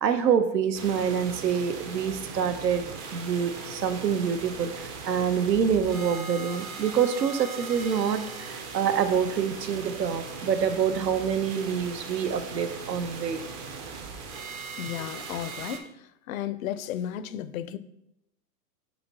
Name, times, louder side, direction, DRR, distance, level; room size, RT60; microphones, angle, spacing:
voice 1, 0.0-2.9 3.1-13.4, right 7 dB, 90° right, 0.8 m, -26 dB
sound 1, 0.7-15.8, right 4 dB, 25° right, 0.4 m, -39 dB
voice 2, 14.8-15.9 16.3-17.8, left 11 dB, 60° left, 0.5 m, -33 dB
8.0 x 3.1 x 4.0 m
hypercardioid pair, 120°, 48 cm